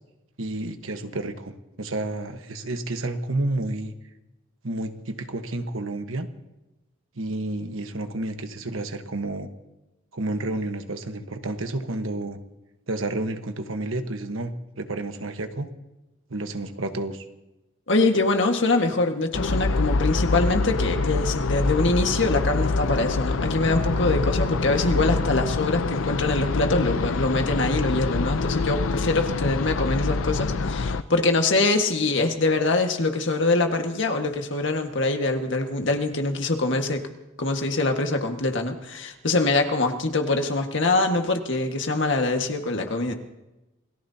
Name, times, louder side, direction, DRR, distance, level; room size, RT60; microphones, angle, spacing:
voice 1, 0.4-3.9 4.6-6.3 7.2-9.5 10.1-12.4 12.9-15.7 16.3-17.2, right 2 dB, 90° right, 7 dB, 1.3 m, -30 dB
voice 2, 17.9-37.1 37.4-43.1, left 2 dB, 70° left, 4 dB, 1.7 m, -24 dB
sound 1, 19.3-31.0, left 3 dB, 90° left, 0.6 m, -25 dB
27.5 x 18.0 x 2.9 m, 0.98 s
head